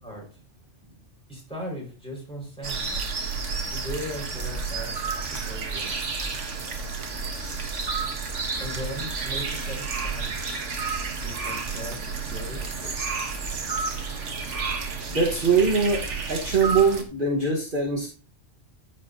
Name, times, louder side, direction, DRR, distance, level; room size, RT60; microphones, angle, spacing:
voice 1, 1.3-3.0 3.7-4.9 5.5-6.0 8.6-10.4 11.2-12.9, equal, 5° left, -3 dB, 5.1 m, -38 dB
sound 1, 2.6-17.0, right 4 dB, 75° right, 1.6 m, -31 dB
voice 2, 15.1-16.0 16.3-18.1, right 4 dB, 45° right, -3 dB, 1.7 m, -22 dB
14.5 x 5.6 x 2.8 m, 0.36 s
omnidirectional pair, 1.2 m